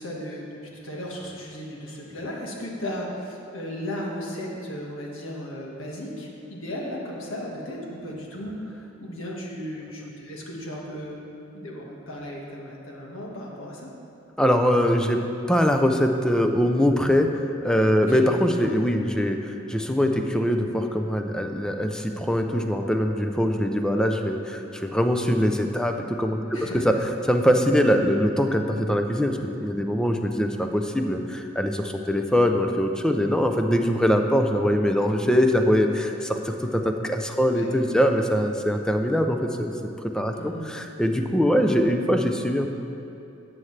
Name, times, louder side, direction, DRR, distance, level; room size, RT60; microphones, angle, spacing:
voice 1, 0.0-8.5 9.0-11.2 11.5-13.9 18.1-18.2 26.5-26.8 37.5-37.7 40.3-40.7, equal, 80° left, -2 dB, 1.6 m, -35 dB
voice 2, 14.4-15.2 15.5-17.3 17.6-26.9 27.2-39.7 40.1-42.7, equal, 5° left, 5 dB, 0.5 m, -22 dB
13.0 x 7.8 x 3.3 m, 2.8 s
head